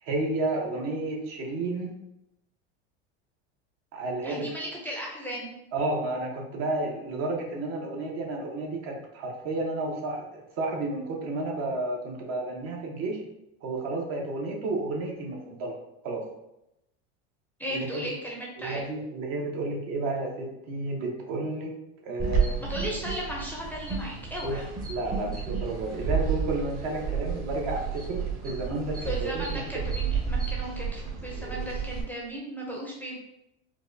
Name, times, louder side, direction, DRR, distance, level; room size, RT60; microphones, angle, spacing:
voice 1, 0.0-1.9 3.9-4.5 5.7-13.2 13.6-15.8 16.0-16.2 17.7-18.1 18.6-21.7 22.0-22.6 24.4-24.6 24.9-29.6, right 2 dB, 55° right, 0 dB, 1.0 m, -31 dB
voice 2, 4.2-5.5 17.6-18.8 22.6-24.6 29.0-33.3, equal, 5° left, -3 dB, 0.5 m, -36 dB
sound 1, 22.2-32.0, right 6 dB, 30° right, 0.9 m, -31 dB
4.5 x 2.3 x 2.6 m, 0.86 s
supercardioid pair, 130°, 31 cm